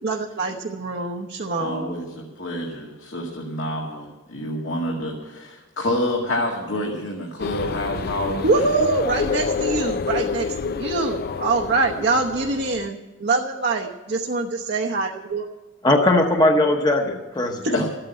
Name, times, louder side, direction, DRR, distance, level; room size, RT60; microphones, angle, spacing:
voice 1, 0.0-1.9 8.4-15.5 17.6-17.7, right 3 dB, 55° right, 1 dB, 1.0 m, -24 dB
voice 2, 1.6-8.6 17.7-17.9, left 1 dB, 75° left, -1 dB, 1.9 m, -28 dB
sound 1, 7.4-12.9, left 5 dB, 50° left, 0.4 m, -28 dB
voice 3, 15.8-17.9, left 1 dB, 20° left, 3 dB, 1.0 m, -19 dB
13.5 x 8.8 x 9.0 m, 1.2 s
head